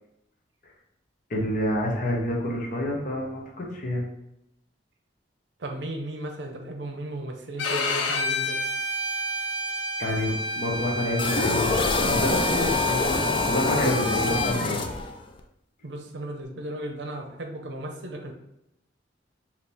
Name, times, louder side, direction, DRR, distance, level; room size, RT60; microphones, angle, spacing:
voice 1, 1.3-4.0 10.0-14.8, left 1 dB, 50° left, -1 dB, 0.9 m, -28 dB
voice 2, 5.6-8.6 15.8-18.3, right 1 dB, 70° right, 3 dB, 0.7 m, -35 dB
Bowed string instrument, 7.6-14.6, left 1 dB, 80° left, 0.5 m, -30 dB
sound 1, 11.2-15.4, left 3 dB, 30° left, 0.3 m, -25 dB
4.2 x 2.9 x 3.4 m, 0.84 s
head